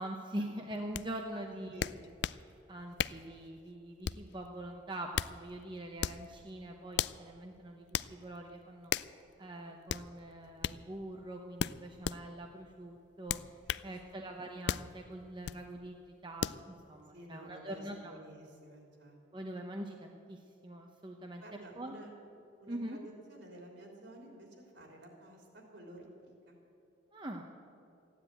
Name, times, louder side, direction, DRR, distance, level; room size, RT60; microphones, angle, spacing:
voice 1, 0.0-1.9 2.7-8.9 9.4-13.4 13.8-18.1 19.3-21.4 21.7-21.9 22.7-23.0 27.1-27.4, right 1 dB, 25° right, 2 dB, 0.8 m, -43 dB
sound 1, 0.9-1.1 1.8-2.4 3.0-3.3 4.0-4.3 4.9-5.4 6.0-6.3 7.0-7.2 7.9-8.1 8.9-9.1 9.9-10.1 10.6-10.8 11.6-12.2 13.3-13.9 14.7-14.9 15.4-15.6 16.4-16.6, left 9 dB, 60° left, 0.3 m, -35 dB
voice 2, 1.3-2.1 14.1-14.2 17.1-19.2 21.4-22.1 22.6-26.6, right 1 dB, 65° right, 0 dB, 3.4 m, -52 dB
15.0 x 10.0 x 9.1 m, 2.6 s
head